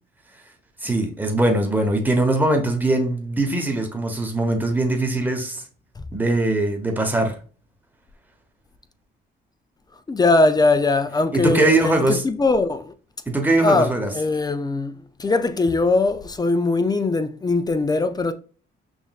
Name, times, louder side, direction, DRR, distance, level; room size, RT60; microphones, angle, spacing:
voice 1, 0.8-5.6 6.1-7.3 11.3-12.2 13.3-14.1, right 2 dB, 10° right, 1.0 m, -21 dB
voice 2, 10.1-12.9 13.6-18.3, left 3 dB, 20° left, 0.4 m, -21 dB
5.9 x 2.5 x 2.4 m
cardioid pair, 90°, 20 cm